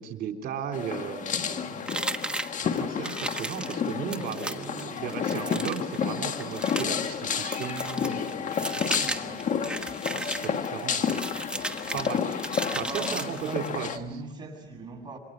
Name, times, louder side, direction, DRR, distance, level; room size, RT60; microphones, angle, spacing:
voice 1, 0.0-2.0 2.6-9.1 10.1-11.2 11.9-12.4 12.7-13.9, right 8 dB, 70° right, 3.7 m, -36 dB
sound 1, 0.7-14.0, left 7 dB, 50° left, 1.7 m, -31 dB
sound 2, 1.9-13.8, right 1 dB, 5° right, 1.3 m, -36 dB
voice 2, 12.8-15.2, right 3 dB, 25° right, 7.7 m, -40 dB
27.5 x 23.5 x 6.8 m
cardioid pair, 110°, 17 cm